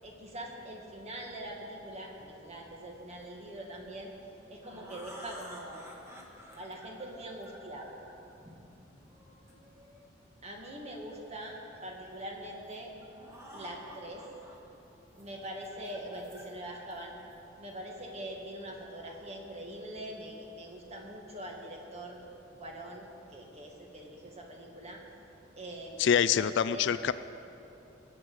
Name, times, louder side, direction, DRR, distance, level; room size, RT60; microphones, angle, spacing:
voice 1, 0.0-4.1 4.5-5.9 6.3-7.9 10.4-12.9 13.5-14.3 15.2-17.2 17.6-22.2 22.6-25.0 25.6-26.8, right 1 dB, 35° right, 0 dB, 1.8 m, -43 dB
sound 1, 4.2-10.1 11.0-12.2 12.7-12.8 13.0-14.5 15.0-17.7, equal, 15° right, 1.5 m, -52 dB
voice 2, 26.0-27.1, left 8 dB, 65° left, 14 dB, 0.4 m, -25 dB
20.0 x 8.1 x 4.8 m, 2.9 s
head